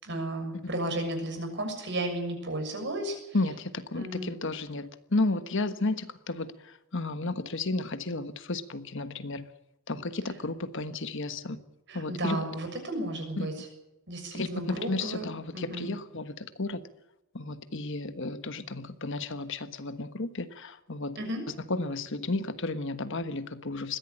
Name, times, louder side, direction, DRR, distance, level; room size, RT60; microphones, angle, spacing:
voice 1, 0.0-3.4 3.9-4.3 11.9-13.7 14.1-15.2 15.5-15.9 21.1-21.4, right 1 dB, 55° right, 5 dB, 6.7 m, -33 dB
voice 2, 3.3-9.5 9.9-11.6 11.9-12.4 13.4-13.5 14.3-16.8 17.3-21.2 21.5-24.0, left 2 dB, 60° left, 11 dB, 1.4 m, -33 dB
21.5 x 15.5 x 8.8 m, 0.91 s
head